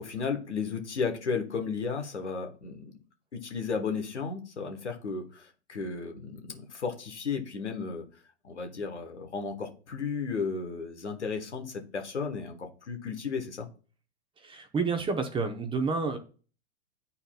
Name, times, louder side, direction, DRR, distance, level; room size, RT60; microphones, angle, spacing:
voice 1, 0.0-2.9 3.3-8.0 8.4-13.7, left 5 dB, 85° left, 4 dB, 1.3 m, -34 dB
voice 2, 14.4-16.2, right 4 dB, 15° right, 6 dB, 0.8 m, -29 dB
10.0 x 4.2 x 2.3 m, 0.38 s
figure-of-eight pair, 100°, 33 cm